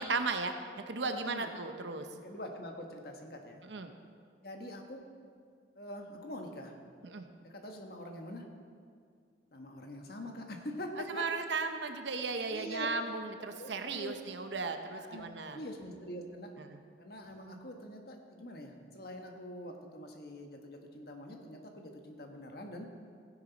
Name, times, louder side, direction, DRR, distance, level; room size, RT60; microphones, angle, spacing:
voice 1, 0.0-2.1 3.7-3.9 7.0-7.3 11.1-15.6 16.6-16.8, right 4 dB, 75° right, 7 dB, 0.8 m, -36 dB
voice 2, 1.0-1.5 2.0-3.6 4.4-5.0 5.7-6.7 7.4-8.4 9.5-11.3 12.5-12.9 13.5-14.1 14.9-16.5 17.0-22.9, left 1 dB, 55° left, 3 dB, 1.3 m, -44 dB
16.0 x 10.0 x 4.0 m, 2.2 s
head